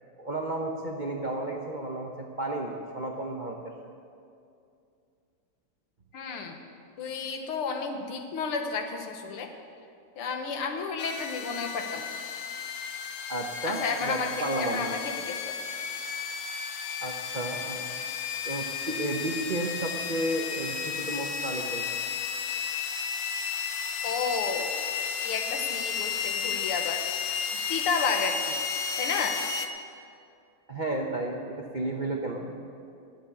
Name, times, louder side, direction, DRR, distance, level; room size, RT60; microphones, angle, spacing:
voice 1, 0.2-3.6 13.3-14.9 17.0-17.9 18.4-22.0 30.7-32.5, right 1 dB, 90° right, 0 dB, 0.4 m, -32 dB
voice 2, 6.1-6.6 7.0-9.5 10.2-12.2 13.6-15.4 24.0-24.7 25.2-27.0 27.7-28.6 29.0-29.4, left 5 dB, 80° left, 4 dB, 2.0 m, -31 dB
sound 1, 11.0-29.7, left 7 dB, 65° left, 0.9 m, -33 dB
12.0 x 8.3 x 8.2 m, 2.5 s
omnidirectional pair, 2.4 m